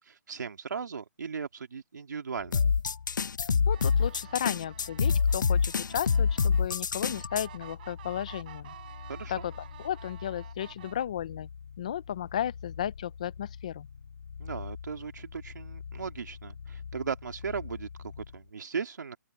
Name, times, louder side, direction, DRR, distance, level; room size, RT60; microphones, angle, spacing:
voice 1, 0.0-2.6 9.1-9.4 14.4-19.2, right 6 dB, 70° right, 2.2 m, -37 dB
sound 1, 2.3-18.5, left 6 dB, 55° left, 5.3 m, -45 dB
sound 2, 2.5-7.4, left 6 dB, 90° left, 0.6 m, -26 dB
voice 2, 3.7-8.7 9.3-9.5 9.8-11.5 11.8-13.9, left 10 dB, 20° left, 0.4 m, -34 dB
sound 3, 3.7-11.1, right 12 dB, 30° right, 4.9 m, -51 dB
open air
hypercardioid pair, 175°, 10 cm